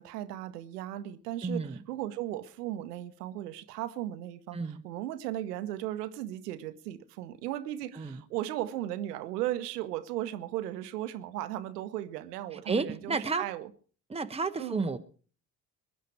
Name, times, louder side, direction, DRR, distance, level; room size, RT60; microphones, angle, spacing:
voice 1, 0.0-13.7 14.6-14.9, right 13 dB, 80° right, 1.0 m, -36 dB
voice 2, 1.4-1.8 4.5-4.8 8.0-8.2 12.5-13.5 14.1-15.0, right 4 dB, 15° right, 1.0 m, -32 dB
22.0 x 10.0 x 4.7 m
figure-of-eight pair, 50°, 47 cm